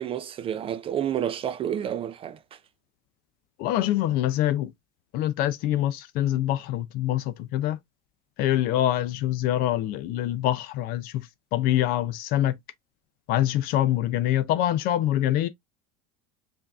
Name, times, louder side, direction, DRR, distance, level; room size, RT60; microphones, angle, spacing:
voice 1, 0.0-2.4, right 9 dB, 30° right, 0.4 m, -29 dB
voice 2, 3.6-4.7 5.1-7.8 8.4-12.6 13.3-15.5, left 13 dB, 55° left, 0.5 m, -25 dB
5.6 x 2.5 x 2.3 m
supercardioid pair, 115°, 18 cm